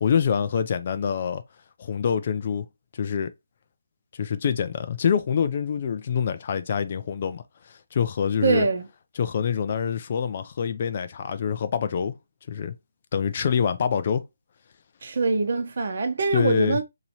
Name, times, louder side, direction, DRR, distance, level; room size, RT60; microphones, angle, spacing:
voice 1, 0.0-1.4 1.8-2.6 2.9-3.3 4.1-7.4 7.7-8.7 9.2-12.1 12.5-12.7 13.1-14.2 16.3-16.8, left 7 dB, 35° left, 0.4 m, -25 dB
voice 2, 8.4-8.9 15.0-16.8, right 4 dB, 55° right, 0.8 m, -23 dB
2.9 x 2.7 x 4.2 m
hypercardioid pair, 165°, 0 cm